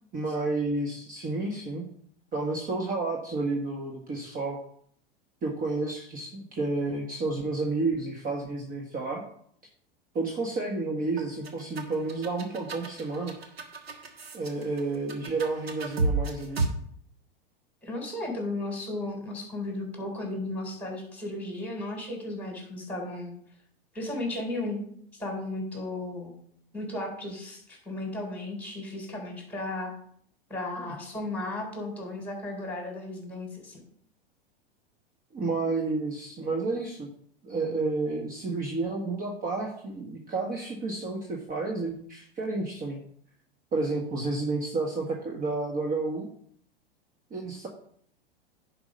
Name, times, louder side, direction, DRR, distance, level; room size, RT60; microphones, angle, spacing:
voice 1, 0.1-1.8 2.3-4.6 5.4-9.2 10.1-13.3 14.3-16.6 30.8-30.9 35.3-37.1 37.4-43.0 43.7-46.3 47.3-47.7, right 3 dB, 30° right, 0 dB, 1.5 m, -31 dB
sound 1, 11.2-16.7, right 3 dB, 85° right, 1.6 m, -32 dB
voice 2, 17.8-23.3 23.9-24.8 25.1-26.3 26.7-29.9 30.5-33.8, left 2 dB, 5° left, 0 dB, 4.0 m, -35 dB
10.5 x 5.0 x 5.2 m, 0.64 s
hypercardioid pair, 95°, 30 cm